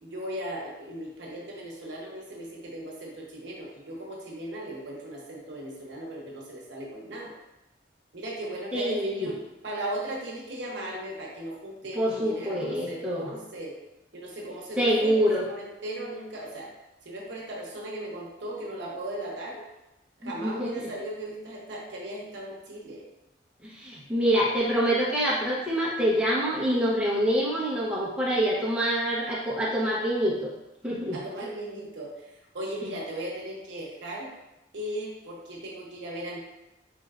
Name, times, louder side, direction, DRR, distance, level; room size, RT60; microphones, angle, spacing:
voice 1, 0.0-7.3 8.1-9.3 9.6-13.8 14.1-16.7 17.0-19.6 20.2-23.0 31.1-34.3 34.7-36.4, right 1 dB, 70° right, -3 dB, 0.9 m, -37 dB
voice 2, 8.7-9.3 11.9-13.3 14.8-15.5 20.2-20.9 23.6-30.4 30.8-31.2, equal, 5° right, -7 dB, 0.7 m, -26 dB
4.4 x 3.2 x 2.4 m, 0.94 s
head